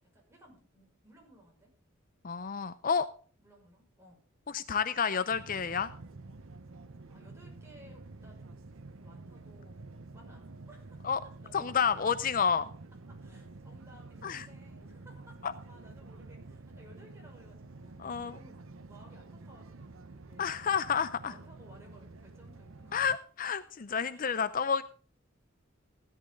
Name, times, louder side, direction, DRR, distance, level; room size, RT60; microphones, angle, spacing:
voice 1, 0.0-1.7 3.4-4.2 7.1-9.8 10.1-11.8 13.1-20.5 21.3-23.0 24.1-24.8, right 1 dB, 15° right, -1 dB, 5.8 m, -58 dB
voice 2, 2.2-3.1 4.5-5.9 11.0-11.2 11.5-12.7 14.2-14.5 15.4-15.5 18.0-18.3 20.4-21.3 22.9-24.8, left 6 dB, 45° left, 14 dB, 0.5 m, -30 dB
sound 1, 5.3-23.2, right 3 dB, 85° right, 0.9 m, -49 dB
16.5 x 11.0 x 3.8 m, 0.40 s
head